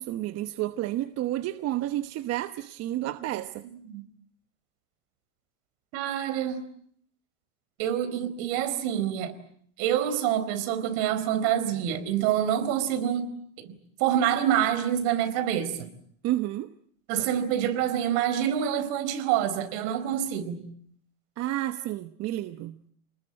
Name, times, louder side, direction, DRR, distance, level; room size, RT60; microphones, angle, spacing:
voice 1, 0.0-3.6 16.2-16.7 21.4-22.8, right 14 dB, 40° right, 1.1 m, -30 dB
voice 2, 5.9-6.6 7.8-9.3 9.8-13.2 13.6-13.7 14.0-15.9 17.1-20.6, right 10 dB, 60° right, 4.5 m, -26 dB
30.0 x 20.0 x 8.9 m
supercardioid pair, 140°, 39 cm